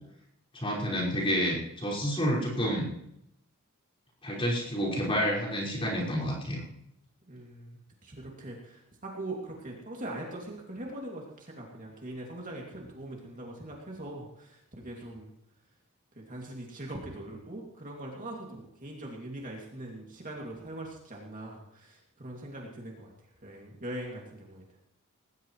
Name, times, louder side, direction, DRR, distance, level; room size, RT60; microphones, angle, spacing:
voice 1, 0.5-2.9 4.2-6.6, equal, 25° left, -5 dB, 5.4 m, -29 dB
voice 2, 7.3-15.3 16.2-23.1 23.4-24.6, right 1 dB, 35° right, -1 dB, 2.6 m, -41 dB
19.5 x 18.0 x 3.2 m, 0.76 s
head